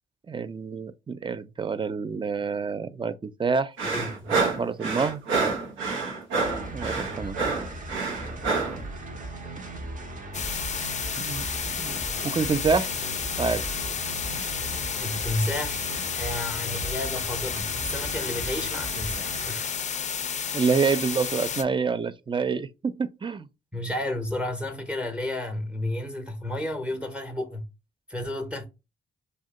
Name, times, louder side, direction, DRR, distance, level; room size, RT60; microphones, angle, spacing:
voice 1, 0.3-3.8 4.3-5.3 6.7-7.4 11.2-11.4 11.8-12.9 13.4-13.7 20.5-23.5, right 5 dB, 25° right, 0.4 m, -27 dB
voice 2, 3.8-4.4 15.0-19.8 23.7-27.7 28.1-28.7, left 1 dB, 5° right, 0.8 m, -32 dB
sound 1, 3.8-8.8, right 4 dB, 80° right, 0.7 m, -28 dB
sound 2, 6.4-19.5, right 2 dB, 40° right, 0.8 m, -37 dB
sound 3, 10.3-21.6, left 7 dB, 35° left, 0.4 m, -31 dB
2.6 x 2.2 x 3.6 m
supercardioid pair, 50°, 20 cm